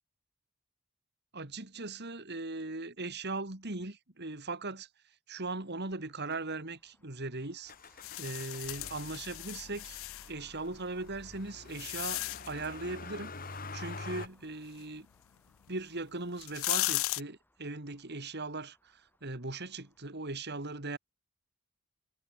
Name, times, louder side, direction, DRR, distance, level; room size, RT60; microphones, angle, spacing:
voice 1, 1.3-4.9 5.3-7.7 8.2-10.0 10.3-15.1 15.7-21.0, right 3 dB, 50° right, 2.8 m, -39 dB
Traffic noise roadway noise, 5.4-20.3, left 1 dB, 10° left, 7.1 m, -67 dB
Motor vehicle (road), 7.7-14.3, left 3 dB, 40° left, 3.7 m, -46 dB
sound 1, 8.0-10.3 11.1-12.7 15.7-15.8 16.3-17.2, left 20 dB, 65° left, 0.3 m, -35 dB
head